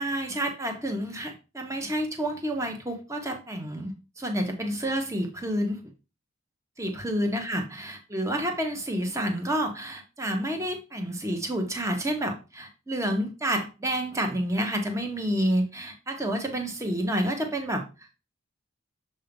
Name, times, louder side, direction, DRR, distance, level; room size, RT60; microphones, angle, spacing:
voice 1, 0.0-5.8 6.8-17.8, right 1 dB, 15° right, 4 dB, 1.0 m, -29 dB
6.9 x 2.7 x 5.2 m, 0.29 s
head